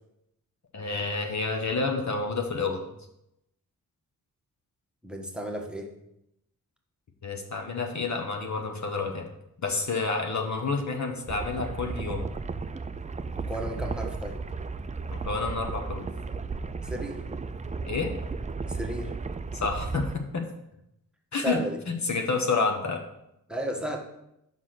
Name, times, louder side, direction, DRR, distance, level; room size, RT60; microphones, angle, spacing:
voice 1, 0.7-2.9 7.2-9.3 9.6-12.3 15.1-16.1 17.9-18.1 19.5-20.1 20.3-20.4 21.3-21.6 21.9-23.0, left 4 dB, 50° left, 2 dB, 1.2 m, -29 dB
voice 2, 5.0-5.9 13.4-14.4 16.8-17.2 18.7-19.1 21.4-21.8 23.5-24.0, right 1 dB, ahead, 2 dB, 1.3 m, -34 dB
sound 1, 11.3-20.2, right 4 dB, 20° right, 0.4 m, -34 dB
5.7 x 4.7 x 5.9 m, 0.82 s
cardioid pair, 50°, 36 cm